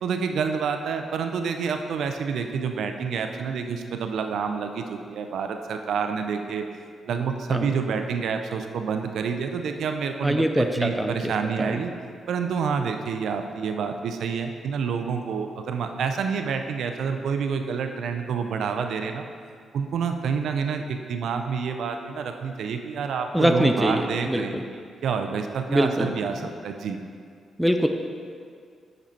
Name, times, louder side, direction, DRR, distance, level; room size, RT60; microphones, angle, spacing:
voice 1, 0.0-6.6 7.0-11.9 12.3-19.3 19.7-27.0, right 6 dB, 75° right, 6 dB, 0.4 m, -28 dB
voice 2, 10.2-11.3 11.6-11.8 23.3-24.6 25.7-26.1 26.4-26.5 27.6-27.9, equal, 5° right, 4 dB, 0.5 m, -23 dB
5.3 x 4.9 x 4.4 m, 2.2 s
supercardioid pair, 55°, 0 cm